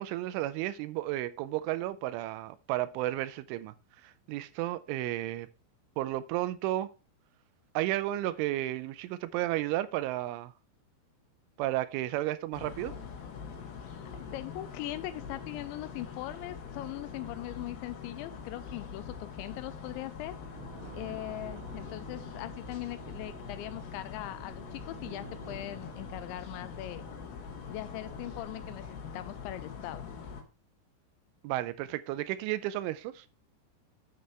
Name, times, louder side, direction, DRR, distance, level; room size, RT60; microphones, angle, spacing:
voice 1, 0.0-3.7 4.0-5.5 6.0-6.9 7.7-10.5 11.6-12.9 31.4-33.3, right 15 dB, 85° right, 3.2 m, -33 dB
sound 1, 12.5-30.4, left 6 dB, 60° left, 3.1 m, -44 dB
voice 2, 14.1-20.4 20.9-27.1 27.7-30.1, left 15 dB, 85° left, 2.8 m, -40 dB
sound 2, 20.5-28.8, right 8 dB, 70° right, 2.7 m, -51 dB
9.6 x 7.6 x 3.2 m
omnidirectional pair, 5.5 m